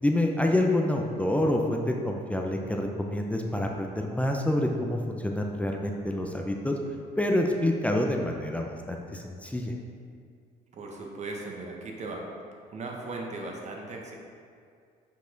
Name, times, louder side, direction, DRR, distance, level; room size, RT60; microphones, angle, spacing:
voice 1, 0.0-6.8 7.2-9.7, left 1 dB, 10° left, 1 dB, 0.5 m, -27 dB
voice 2, 10.7-12.3 12.7-14.1, right 2 dB, 45° right, 0 dB, 1.2 m, -37 dB
7.3 x 4.7 x 3.9 m, 2.2 s
cardioid pair, 110°, 17 cm